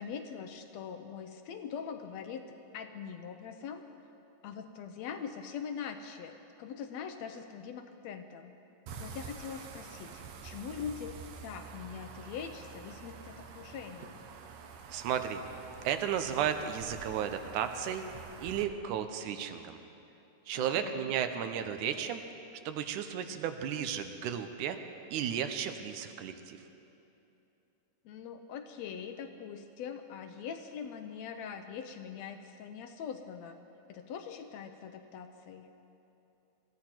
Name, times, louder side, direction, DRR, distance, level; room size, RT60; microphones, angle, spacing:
voice 1, 0.0-2.4 2.7-3.9 4.4-8.5 9.0-14.2 20.6-21.1 28.1-33.6 33.9-35.7, left 7 dB, 75° left, 7 dB, 1.7 m, -42 dB
sound 1, 8.9-18.6, right 5 dB, 70° right, 1.9 m, -47 dB
voice 2, 14.9-15.4 15.8-18.1 18.4-19.8 20.5-22.2 22.7-24.8 25.1-26.6, right 9 dB, 90° right, 8 dB, 2.3 m, -34 dB
22.0 x 14.5 x 4.4 m, 2.9 s
omnidirectional pair, 3.5 m